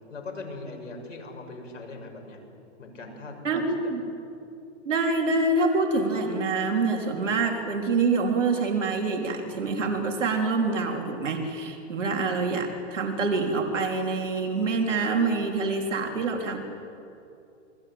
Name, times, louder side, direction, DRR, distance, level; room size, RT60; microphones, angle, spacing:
voice 1, 0.1-2.4 2.8-3.9, left 3 dB, 90° left, 3 dB, 6.4 m, -40 dB
voice 2, 3.4-4.0 4.9-16.6, right 3 dB, 90° right, 3 dB, 3.8 m, -26 dB
28.5 x 24.0 x 8.7 m, 2.8 s
hypercardioid pair, 125°, 36 cm